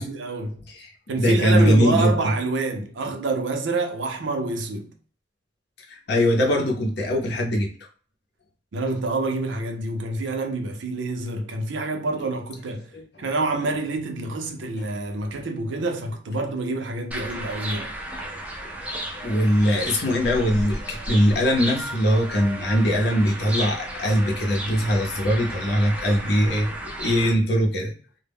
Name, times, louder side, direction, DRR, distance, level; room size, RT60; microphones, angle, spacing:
voice 1, 0.0-0.7 1.1-4.9 8.7-12.9 13.2-17.9, right 3 dB, 75° right, 0.5 m, -27 dB
voice 2, 0.7-2.1 5.9-7.7 12.9-13.0 19.2-27.9, equal, 60° left, 0.7 m, -21 dB
sound 1, 17.1-27.3, right 1 dB, 5° right, 0.3 m, -34 dB
2.1 x 2.0 x 3.4 m
head